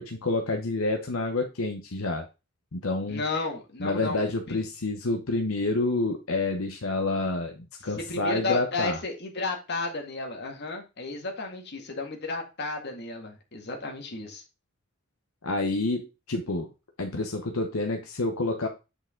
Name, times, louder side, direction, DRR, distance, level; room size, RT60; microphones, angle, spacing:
voice 1, 0.0-2.3 2.7-3.2 3.8-9.0 15.4-16.7 17.0-18.7, left 2 dB, 80° left, 4 dB, 0.9 m, -28 dB
voice 2, 3.1-4.2 4.5-4.6 7.9-14.4, left 3 dB, 55° left, 2 dB, 1.9 m, -33 dB
8.6 x 5.0 x 3.8 m, 0.28 s
head